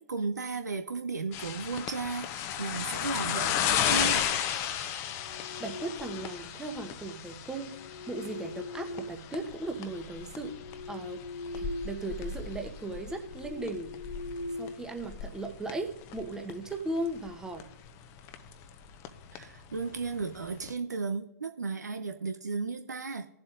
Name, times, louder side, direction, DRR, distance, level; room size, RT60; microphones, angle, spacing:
voice 1, 0.0-4.2 19.3-23.3, right 4 dB, 75° right, 7 dB, 0.7 m, -34 dB
sound 1, 1.3-20.7, left 9 dB, 30° left, 0.7 m, -35 dB
sound 2, 5.1-6.6 7.6-9.7 10.2-12.1 12.4-12.6 13.1-15.5, left 2 dB, 80° left, 0.7 m, -42 dB
voice 2, 5.6-7.8 8.1-10.6 10.9-11.2 11.5-13.9 14.5-17.7, right 2 dB, 5° right, 3 dB, 1.1 m, -37 dB
20.5 x 7.5 x 2.5 m, 0.87 s
figure-of-eight pair, 115°, 9 cm